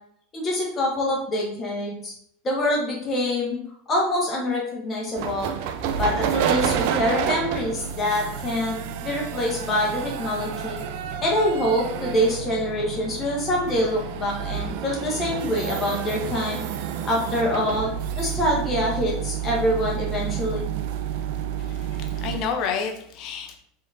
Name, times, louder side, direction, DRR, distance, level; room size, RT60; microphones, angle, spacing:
voice 1, 0.3-2.1 2.4-3.6 3.9-5.5 6.0-10.8 11.2-16.6 17.0-17.9 18.2-20.7, left 1 dB, 30° left, -2 dB, 1.1 m, -25 dB
sound 1, 5.2-22.5, right 8 dB, 55° right, 0.3 m, -29 dB
voice 2, 21.9-23.6, left 6 dB, 50° left, 4 dB, 0.6 m, -29 dB
4.8 x 2.9 x 2.7 m, 0.66 s
figure-of-eight pair, 80°, 0 cm